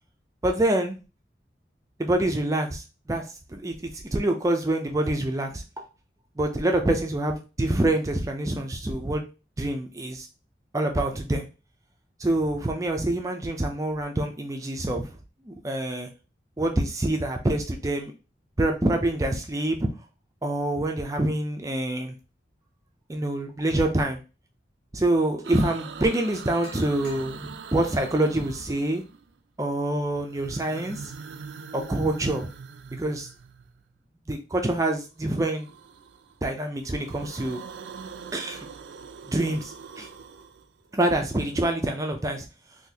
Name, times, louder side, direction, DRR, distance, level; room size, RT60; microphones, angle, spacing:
voice 1, 0.4-1.0 2.0-5.9 6.4-9.3 9.6-10.3 10.7-11.5 12.2-15.1 15.4-16.1 16.6-18.1 18.6-19.8 20.4-22.2 23.1-24.2 24.9-29.0 29.6-31.1 31.7-32.5 33.0-33.3 34.3-35.7 36.4-37.6 38.3-38.7 39.2-40.1 40.9-42.5, right 1 dB, 20° right, 3 dB, 0.4 m, -26 dB
sound 1, 25.4-29.4 30.1-33.9 35.2-36.4 36.7-41.7, right 6 dB, 85° right, 0.4 m, -43 dB
sound 2, 25.5-25.7 26.3-27.8, equal, 65° left, 1.3 m, -49 dB
3.9 x 2.7 x 2.7 m, 0.31 s
head